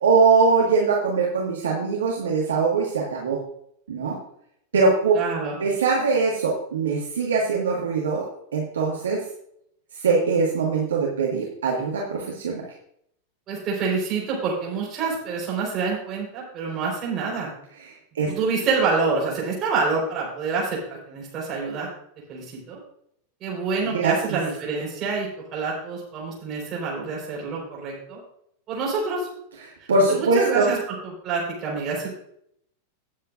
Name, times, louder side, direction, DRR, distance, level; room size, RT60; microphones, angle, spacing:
voice 1, 0.0-3.4 3.9-4.2 4.7-5.1 5.6-8.3 8.5-9.2 10.0-12.6 18.2-18.3 23.9-24.1 29.9-30.7, right 4 dB, 65° right, -2 dB, 1.7 m, -22 dB
voice 2, 5.1-5.6 13.5-17.5 18.3-21.9 22.3-22.8 23.4-28.2 28.7-29.3 29.8-32.1, right 4 dB, 30° right, -3 dB, 4.3 m, -27 dB
18.5 x 7.4 x 2.5 m, 0.72 s
figure-of-eight pair, 90°, 0 cm